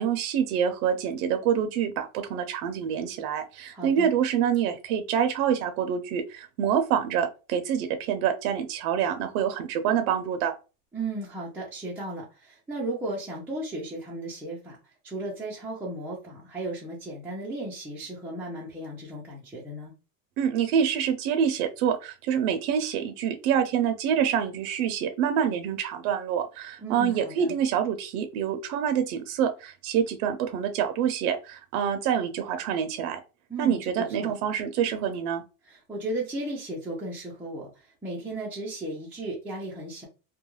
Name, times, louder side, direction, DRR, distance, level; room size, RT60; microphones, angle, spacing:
voice 1, 0.0-10.5 20.4-33.2 33.6-35.4, right 8 dB, 80° right, 6 dB, 0.6 m, -26 dB
voice 2, 3.7-4.1 10.9-14.8 15.0-19.9 26.8-27.5 33.5-34.3 35.7-40.1, right 2 dB, 5° right, -7 dB, 0.4 m, -35 dB
2.3 x 2.2 x 3.0 m, 0.31 s
supercardioid pair, 145°, 43 cm